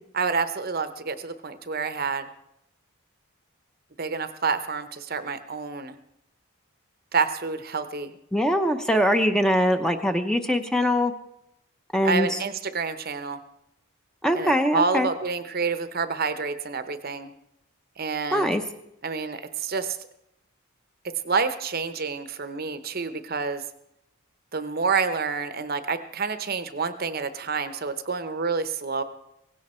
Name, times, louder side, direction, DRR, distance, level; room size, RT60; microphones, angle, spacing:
voice 1, 0.1-2.3 4.0-5.9 7.1-8.1 12.0-13.4 14.3-17.3 18.0-18.5 19.0-20.0 21.2-23.6 24.5-29.0, right 5 dB, 45° right, 11 dB, 0.8 m, -28 dB
voice 2, 8.3-11.1 11.9-12.4 14.2-15.1 18.3-18.6, equal, 5° left, 6 dB, 0.7 m, -22 dB
17.0 x 16.5 x 4.4 m, 0.83 s
head